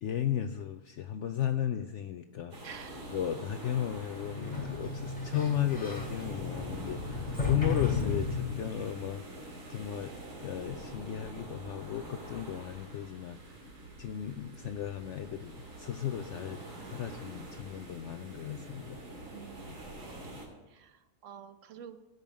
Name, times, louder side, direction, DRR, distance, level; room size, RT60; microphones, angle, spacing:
voice 1, 0.0-2.5 3.1-9.2 9.7-10.1 10.4-13.4 14.0-16.6 16.9-19.0, left 10 dB, 65° left, 9 dB, 0.7 m, -35 dB
sound 1, 2.5-20.5, right 1 dB, 85° right, 3.0 m, -46 dB
voice 2, 2.6-3.1 19.3-20.4 20.7-22.0, right 8 dB, 60° right, 10 dB, 1.1 m, -49 dB
Sliding door, 4.2-8.9, left 4 dB, 25° left, 3.3 m, -34 dB
16.0 x 5.4 x 7.3 m, 1.2 s
omnidirectional pair, 1.6 m